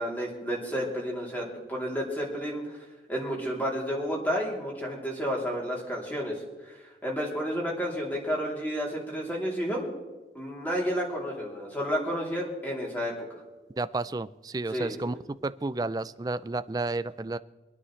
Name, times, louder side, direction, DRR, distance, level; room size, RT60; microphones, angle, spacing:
voice 1, 0.0-9.8 10.3-13.4 14.7-15.0, equal, 10° left, -3 dB, 3.1 m, -31 dB
voice 2, 13.8-15.2 15.4-17.4, right 3 dB, 20° right, 14 dB, 0.3 m, -31 dB
25.5 x 9.8 x 3.2 m, 1.2 s
head